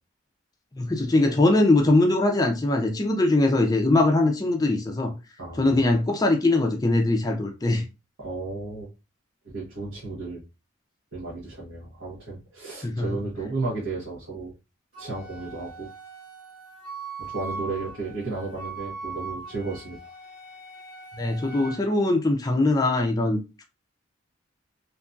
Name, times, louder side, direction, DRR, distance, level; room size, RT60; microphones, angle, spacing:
voice 1, 0.8-5.1 5.6-7.8 12.8-13.1 21.2-23.4, left 2 dB, 20° left, 0.4 m, -21 dB
voice 2, 5.4-5.9 8.2-8.9 9.4-10.4 11.1-14.5 15.0-15.9 17.2-20.0, right 3 dB, 90° right, 1.1 m, -33 dB
Wind instrument woodwind instrument, 14.9-21.8, right 3 dB, 55° right, 1.3 m, -40 dB
2.9 x 2.5 x 2.3 m
head